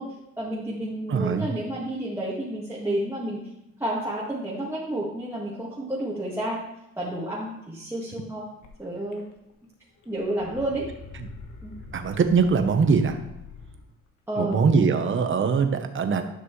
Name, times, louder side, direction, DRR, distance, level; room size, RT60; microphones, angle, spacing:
voice 1, 0.0-3.5 3.8-6.6 7.0-8.5 8.8-9.3 10.1-10.9 11.6-11.8 14.3-14.8, right 1 dB, 10° right, -7 dB, 1.8 m, -30 dB
voice 2, 1.1-1.5 11.9-13.2 14.4-16.2, right 5 dB, 40° right, 7 dB, 1.0 m, -22 dB
sound 1, 8.6-8.7 9.1-9.7 10.0-13.9, left 4 dB, 85° left, 1.4 m, -44 dB
11.0 x 6.0 x 3.2 m, 0.87 s
cardioid pair, 90°, 30 cm